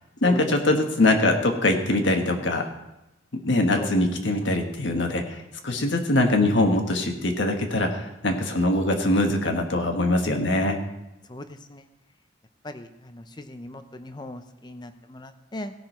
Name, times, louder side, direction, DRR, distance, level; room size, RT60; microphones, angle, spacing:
voice 1, 0.2-2.7 3.4-5.4 5.6-10.8, left 2 dB, 75° left, 4 dB, 1.4 m, -22 dB
voice 2, 12.6-15.7, left 1 dB, 20° left, 8 dB, 0.6 m, -38 dB
16.5 x 6.2 x 4.4 m, 0.97 s
head